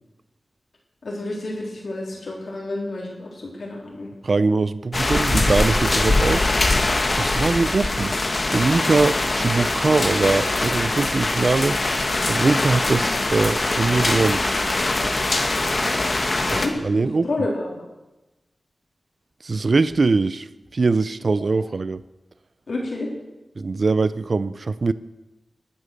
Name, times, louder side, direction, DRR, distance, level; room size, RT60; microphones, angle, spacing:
voice 1, 1.0-4.1 16.2-17.8 21.2-21.3 22.7-23.1, left 2 dB, 75° left, -2 dB, 3.7 m, -30 dB
voice 2, 4.2-6.4 7.1-8.1 8.5-11.8 12.3-14.4 16.5-17.3 19.4-20.5 20.7-22.0 23.6-24.9, right 3 dB, 55° right, 15 dB, 0.6 m, -22 dB
sound 1, 4.9-16.7, left 2 dB, 40° left, 1.8 m, -22 dB
19.5 x 11.0 x 6.7 m, 1.0 s
wide cardioid pair, 105°, 0 cm